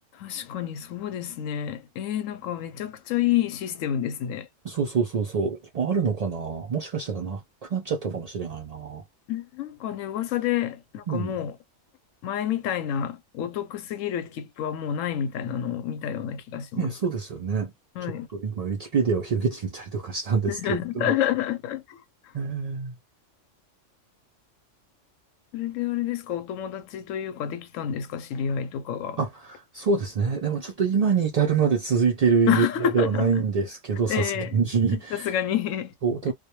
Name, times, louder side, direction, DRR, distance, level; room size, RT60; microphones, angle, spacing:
voice 1, 0.2-4.5 9.3-11.5 12.2-16.9 18.0-18.3 20.5-22.0 25.5-29.2 32.5-33.3 34.1-34.6 34.9-35.9 36.3-36.4, left 10 dB, 85° left, 1.0 m, -29 dB
voice 2, 4.6-9.0 11.1-11.3 16.8-17.7 18.0-21.2 22.3-22.9 29.2-35.3 36.0-36.3, right 5 dB, 80° right, 0.3 m, -26 dB
2.2 x 2.1 x 2.9 m
omnidirectional pair, 1.3 m